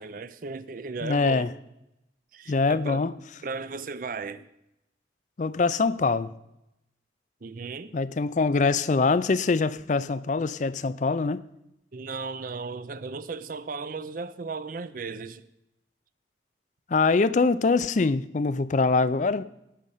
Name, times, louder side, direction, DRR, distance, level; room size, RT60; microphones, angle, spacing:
voice 1, 0.0-1.5 2.3-3.1 3.4-4.5 7.4-8.0 11.9-15.5, right 4 dB, 45° right, 0.5 m, -36 dB
voice 2, 1.0-1.5 2.5-3.1 5.4-6.3 7.9-11.5 16.9-19.4, left 4 dB, 40° left, 0.4 m, -24 dB
18.0 x 6.5 x 5.6 m
head